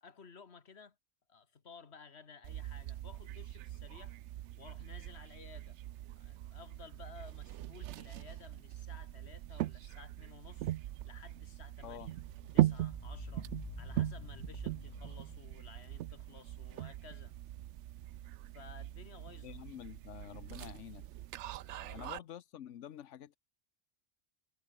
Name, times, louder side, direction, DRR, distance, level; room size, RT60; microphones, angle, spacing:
voice 1, 0.0-1.0 1.3-4.1 4.6-5.8 6.2-12.0 12.5-13.5 13.8-17.3 18.5-19.6 21.6-22.3, left 5 dB, 65° left, 1.8 m, -55 dB
sound 1, 2.4-22.2, right 13 dB, 75° right, 0.9 m, -40 dB
sound 2, 8.3-8.7 12.2-16.7 17.0-17.1, left 5 dB, 35° left, 0.5 m, -50 dB
voice 2, 11.8-12.1 19.4-21.1 21.9-23.4, left 10 dB, 85° left, 1.1 m, -48 dB
sound 3, 16.2-17.0 17.4-17.5 18.0-21.2, left 1 dB, 10° left, 2.7 m, -74 dB
omnidirectional pair, 1.2 m